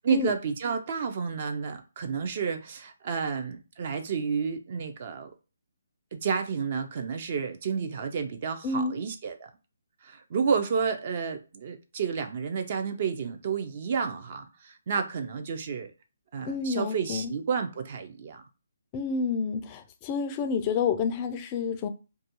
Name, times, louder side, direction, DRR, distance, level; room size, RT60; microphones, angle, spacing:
voice 1, 0.0-5.3 6.1-9.5 10.0-15.9 16.3-18.4, right 6 dB, 40° right, 0.4 m, -30 dB
voice 2, 8.6-9.0 16.5-17.3 18.9-21.9, left 5 dB, 25° left, 0.3 m, -29 dB
2.3 x 2.2 x 2.9 m
hypercardioid pair, 160°, 0 cm